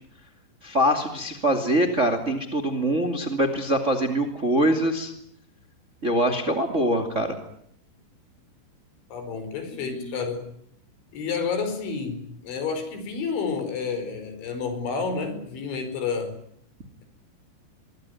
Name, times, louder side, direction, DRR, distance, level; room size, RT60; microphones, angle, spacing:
voice 1, 0.6-5.1 6.0-7.4 9.8-10.2, right 1 dB, 20° right, 6 dB, 2.0 m, -24 dB
voice 2, 9.1-10.5 11.1-16.3, left 5 dB, 80° left, 9 dB, 7.1 m, -30 dB
24.0 x 23.5 x 9.4 m, 0.71 s
omnidirectional pair, 5.3 m